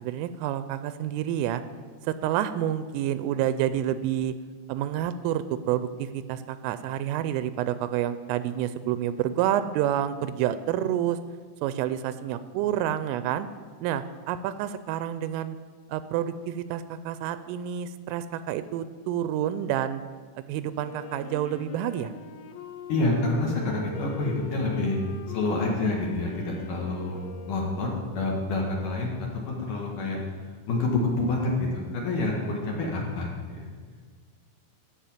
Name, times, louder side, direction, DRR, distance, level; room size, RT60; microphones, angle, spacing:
voice 1, 0.0-1.6 2.0-4.3 4.7-11.2 11.6-13.5 13.8-15.6 15.9-20.0 20.5-22.1, right 11 dB, 85° right, 12 dB, 3.1 m, -28 dB
Wind instrument woodwind instrument, 20.8-28.5, left 5 dB, 85° left, 2.2 m, -43 dB
voice 2, 22.9-25.0 25.3-27.2 27.5-29.1 29.5-30.2 30.7-33.6, left 2 dB, 55° left, -2 dB, 2.4 m, -27 dB
14.0 x 5.6 x 8.6 m, 1.5 s
omnidirectional pair, 5.7 m